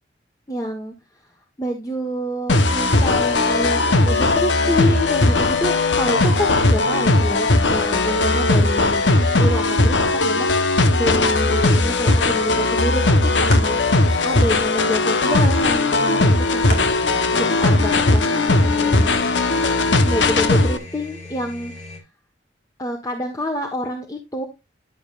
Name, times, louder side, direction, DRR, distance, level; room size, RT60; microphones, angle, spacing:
voice 1, 0.5-0.9 1.6-16.7 17.3-19.2 20.0-21.7 22.8-24.5, equal, 20° left, 3 dB, 1.2 m, -27 dB
sound 1, 2.5-20.8, left 2 dB, 75° left, 1.1 m, -18 dB
sound 2, 12.2-13.7 14.2-14.3 15.1-16.8 17.2-17.3 18.3-19.4, left 2 dB, 55° left, 3.5 m, -36 dB
sound 3, 17.0-22.0, left 2 dB, 35° left, 2.6 m, -39 dB
11.0 x 7.0 x 2.4 m, 0.25 s
head